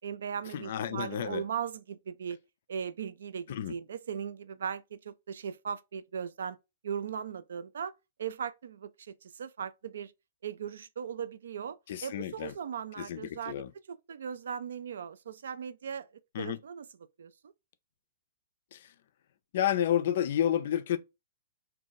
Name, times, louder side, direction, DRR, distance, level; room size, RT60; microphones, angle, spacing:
voice 1, 0.0-2.4 2.7-6.6 6.8-7.9 8.2-10.1 10.4-13.6 13.9-16.1 16.4-16.9 17.2-17.5, right 7 dB, 75° right, 0.3 m, -38 dB
voice 2, 0.5-1.4 3.5-3.8 11.9-12.5 13.0-13.7 16.3-16.6 18.7-18.9 19.5-21.0, left 10 dB, 60° left, 0.3 m, -30 dB
2.5 x 2.2 x 3.8 m
hypercardioid pair, 135°, 0 cm